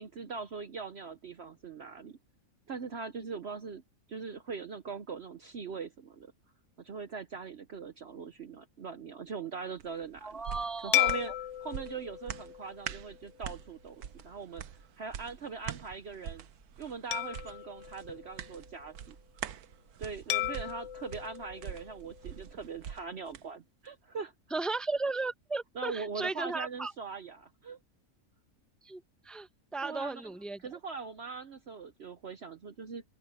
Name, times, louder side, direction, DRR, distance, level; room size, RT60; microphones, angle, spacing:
voice 1, 0.0-2.2 2.7-3.8 4.1-6.3 6.8-10.4 10.8-11.3 11.6-14.6 15.0-16.5 16.8-19.2 20.0-24.3 25.8-27.8 29.8-30.3 30.6-33.0, right 5 dB, 50° right, 1.0 m, -41 dB
sound 1, 9.8-23.5 23.9-24.0, right 9 dB, 80° right, 1.4 m, -45 dB
voice 2, 10.2-11.2 24.5-26.9 28.8-30.6, right 3 dB, ahead, 1.0 m, -35 dB
sound 2, 10.9-13.6 14.2-14.4 17.1-18.9 20.3-22.6, left 15 dB, 65° left, 0.8 m, -35 dB
open air
omnidirectional pair, 1.6 m